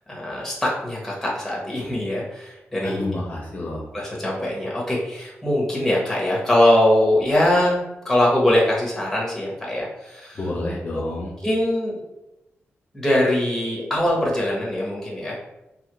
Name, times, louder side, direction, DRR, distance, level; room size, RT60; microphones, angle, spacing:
voice 1, 0.1-3.1 3.9-10.4 10.9-11.1 11.4-12.0 12.9-15.4, left 1 dB, 5° left, -4 dB, 0.9 m, -22 dB
voice 2, 2.8-3.9 10.4-11.3, left 2 dB, 40° left, -2 dB, 0.5 m, -29 dB
2.8 x 2.4 x 3.0 m, 0.93 s
wide cardioid pair, 135°, 4 cm